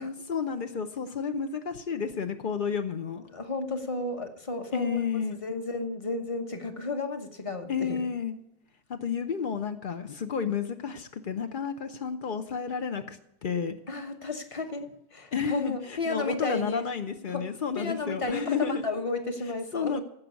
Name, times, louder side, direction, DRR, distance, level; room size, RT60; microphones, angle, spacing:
voice 1, 0.0-3.3 4.7-5.4 7.7-8.3 8.9-13.8 15.3-18.8 19.7-20.0, left 6 dB, 85° left, 7 dB, 0.4 m, -31 dB
voice 2, 3.3-5.0 5.3-8.0 13.9-16.9 17.3-20.0, left 3 dB, 25° left, 7 dB, 0.9 m, -33 dB
15.5 x 5.5 x 8.2 m, 0.84 s
omnidirectional pair, 1.9 m